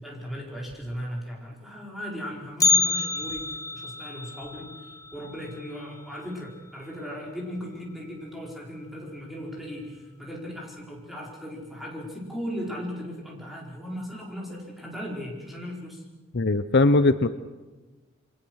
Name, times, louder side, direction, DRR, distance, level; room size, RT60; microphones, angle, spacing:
voice 1, 0.0-16.0, equal, ahead, -3 dB, 4.9 m, -37 dB
Bell, 2.6-6.7 7.0-7.1 7.6-7.7 8.5-8.6 9.3-9.6 10.0-10.1, left 4 dB, 15° left, 0.8 m, -28 dB
voice 2, 16.3-17.3, left 2 dB, 50° left, 12 dB, 0.7 m, -20 dB
28.0 x 24.5 x 6.4 m, 1.2 s
head